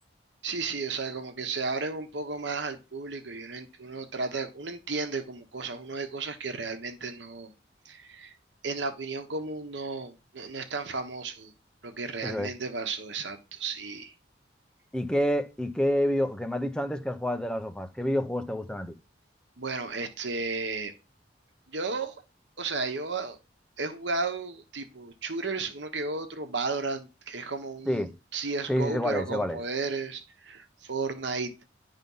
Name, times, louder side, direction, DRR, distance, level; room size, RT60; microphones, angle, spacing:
voice 1, 0.4-7.5 7.8-8.3 8.6-11.5 11.8-14.1 19.6-20.9 21.7-22.2 22.6-23.4 23.8-31.5, right 4 dB, 75° right, 1.1 m, -34 dB
voice 2, 14.9-18.9 27.9-28.1 28.7-29.6, equal, 5° left, 0.7 m, -28 dB
10.5 x 3.6 x 5.5 m
head